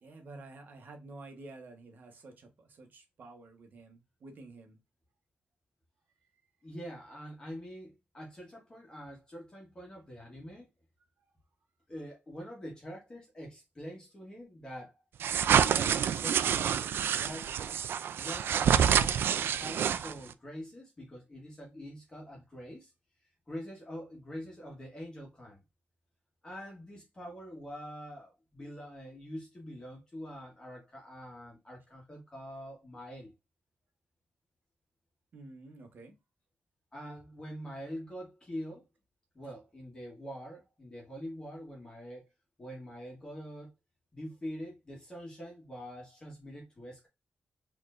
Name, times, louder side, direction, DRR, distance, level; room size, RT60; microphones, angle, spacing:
voice 1, 0.0-4.8 35.3-36.1, right 2 dB, 55° right, 1.1 m, -50 dB
voice 2, 6.6-10.7 11.9-15.0 15.4-16.8 17.0-17.5 18.2-19.3 19.6-22.9 23.5-25.6 26.4-33.3 36.9-38.8 39.3-42.3 42.6-43.7 44.1-47.1, equal, 20° left, 1.5 m, -45 dB
sound 1, 15.2-20.3, right 8 dB, 90° right, 0.3 m, -27 dB
4.3 x 3.1 x 2.5 m
wide cardioid pair, 155°, 4 cm